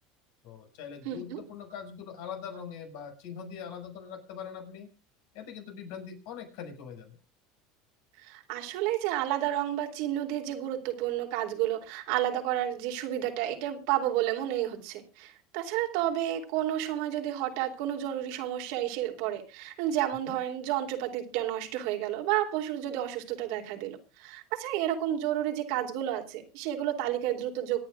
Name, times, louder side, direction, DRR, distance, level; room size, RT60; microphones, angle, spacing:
voice 1, 0.4-4.9 5.3-7.2 20.2-20.4, left 7 dB, 70° left, 4 dB, 5.8 m, -42 dB
voice 2, 1.0-1.4 8.2-27.9, right 12 dB, 70° right, 5 dB, 3.0 m, -31 dB
26.0 x 10.0 x 2.4 m, 0.29 s
hypercardioid pair, 95°, 0 cm